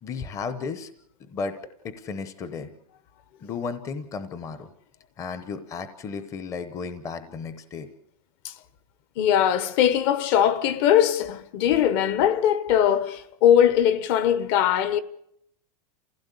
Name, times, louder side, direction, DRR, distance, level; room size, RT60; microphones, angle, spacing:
voice 1, 0.0-0.9 1.2-1.6 1.8-2.7 3.4-4.7 5.2-7.9, left 5 dB, 15° left, 0.9 m, -34 dB
voice 2, 9.2-15.0, left 10 dB, 40° left, 1.1 m, -21 dB
28.0 x 16.0 x 8.2 m
supercardioid pair, 170°, 19 cm